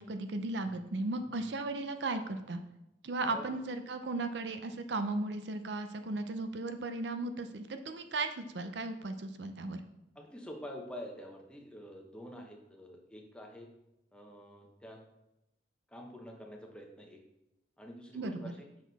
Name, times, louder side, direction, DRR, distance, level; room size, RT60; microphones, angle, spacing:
voice 1, 0.0-2.6 3.0-9.8 18.1-18.5, right 2 dB, 65° right, 8 dB, 0.6 m, -36 dB
voice 2, 3.2-3.5 10.1-13.7 14.1-15.0 15.9-17.2 17.8-18.7, equal, 5° left, 1 dB, 1.0 m, -47 dB
6.4 x 6.0 x 4.1 m, 0.90 s
head